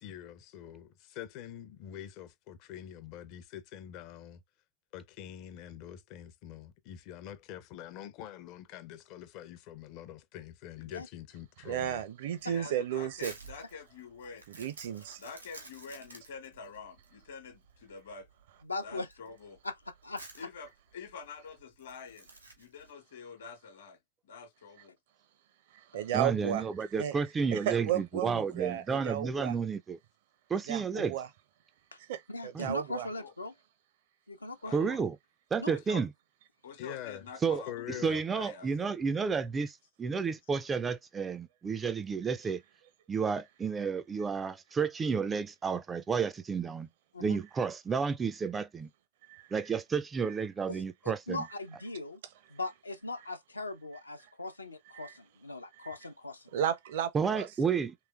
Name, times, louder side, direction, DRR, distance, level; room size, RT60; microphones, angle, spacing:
voice 1, 0.0-4.4 4.9-12.0 36.8-37.2 37.7-38.2, left 11 dB, 40° left, 0.5 m, -45 dB
voice 2, 11.7-13.3 14.5-15.2 25.9-26.6 27.0-27.2 27.5-29.6 30.7-31.3 32.1-33.1 49.2-49.5 55.0-55.1 56.5-57.5, right 10 dB, 55° right, 0.6 m, -33 dB
Crumpling crinkling, 12.4-22.9, right 3 dB, 80° right, 1.3 m, -52 dB
voice 3, 12.5-14.4 15.2-18.3 18.8-19.6 20.3-22.3 22.6-24.0 24.2-24.9 33.1-33.3 34.6-35.0 35.7-36.0 36.6-38.9, left 5 dB, 60° left, 1.1 m, -47 dB
voice 4, 18.6-19.1 19.6-19.8 20.0-20.5 31.9-32.0 32.3-33.5 34.3-34.9 35.6-35.8 47.1-47.4 50.7-50.8 51.3-52.2 52.5-56.5, left 2 dB, 80° left, 0.6 m, -39 dB
voice 5, 26.1-30.0 30.5-31.2 32.5-32.7 34.7-35.2 35.5-36.1 37.4-37.6 38.0-42.6 43.1-46.9 47.2-48.9 49.5-51.4 57.1-57.9, right 5 dB, 20° right, 0.3 m, -31 dB
3.2 x 3.1 x 2.3 m
figure-of-eight pair, 90°, 0 cm